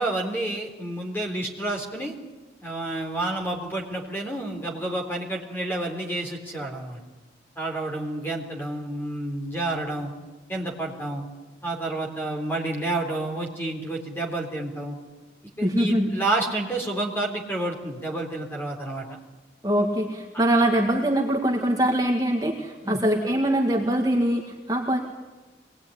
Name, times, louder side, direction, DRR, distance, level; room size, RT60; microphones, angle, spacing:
voice 1, 0.0-2.1 2.6-7.0 7.6-10.1 10.5-11.3 11.6-15.0 15.6-19.1 22.8-23.0, right 2 dB, 10° left, 1 dB, 3.7 m, -29 dB
voice 2, 15.6-16.1 19.6-25.0, right 1 dB, 20° right, 1 dB, 1.9 m, -23 dB
24.0 x 19.5 x 10.0 m, 1.2 s
head